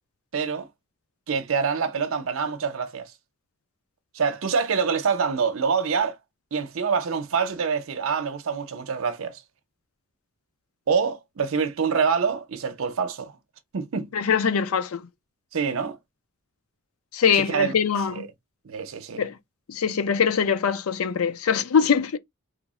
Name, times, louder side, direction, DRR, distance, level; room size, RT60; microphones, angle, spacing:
voice 1, 0.3-0.7 1.3-3.1 4.1-6.2 6.5-9.4 10.9-13.4 13.7-14.1 15.5-16.0 17.5-17.7 18.2-18.3 18.6-19.2, right 6 dB, 70° right, 0.6 m, -25 dB
voice 2, 14.1-15.0 17.1-18.2 19.2-19.3 19.7-22.2, left 7 dB, 80° left, 0.5 m, -23 dB
3.3 x 2.0 x 3.5 m
head